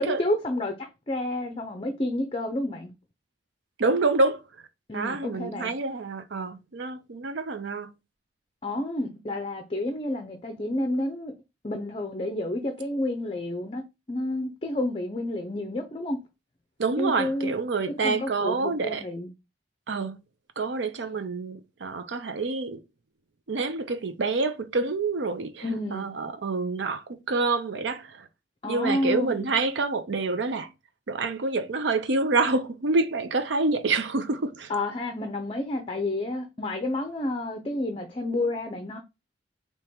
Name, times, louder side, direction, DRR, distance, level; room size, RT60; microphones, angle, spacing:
voice 1, 0.0-2.9 4.9-5.7 8.6-11.3 11.6-16.2 17.0-17.5 18.0-19.3 25.6-26.1 28.6-29.5 34.7-39.0, left 1 dB, 30° left, 0.6 m, -30 dB
voice 2, 3.8-4.4 4.9-7.9 16.8-19.0 19.9-20.2 20.6-22.8 23.5-25.6 25.9-28.3 28.7-30.7 31.1-34.7, right 3 dB, 80° right, 0.6 m, -27 dB
4.4 x 2.9 x 3.5 m
head